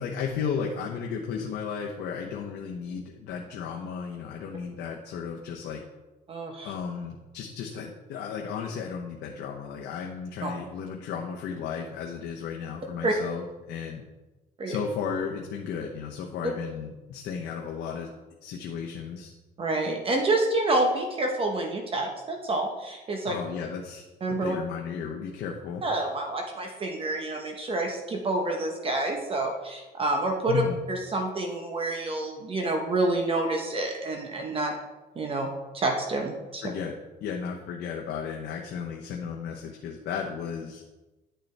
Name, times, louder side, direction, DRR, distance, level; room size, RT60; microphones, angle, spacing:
voice 1, 0.0-5.8 6.6-14.0 14.7-18.1 18.4-19.3 23.2-24.0 24.3-25.8 30.5-30.8 36.6-36.9 37.2-40.8, left 6 dB, 80° left, 0 dB, 0.9 m, -34 dB
voice 2, 6.3-6.7 10.4-10.5 13.0-13.1 14.6-14.8 19.6-23.4 24.2-24.6 25.8-30.6 30.9-34.7 35.2-35.5 35.7-36.6, right 2 dB, 30° right, 2 dB, 1.0 m, -28 dB
10.5 x 6.7 x 3.3 m, 1.1 s
cardioid pair, 140°, 17 cm